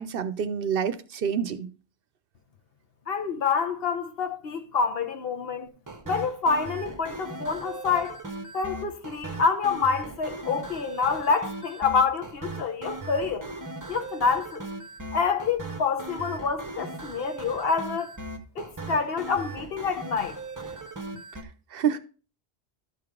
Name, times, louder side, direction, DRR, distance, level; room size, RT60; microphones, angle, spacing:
voice 1, 0.0-1.7 21.7-22.0, right 7 dB, 65° right, 0.8 m, -27 dB
voice 2, 3.1-5.7 6.1-8.2 8.5-13.5 13.9-14.6 15.1-18.1 18.6-20.4, left 5 dB, 65° left, 1.1 m, -27 dB
sound 1, 5.9-21.4, right 3 dB, 20° right, 0.8 m, -38 dB
12.5 x 4.8 x 3.6 m
omnidirectional pair, 1.1 m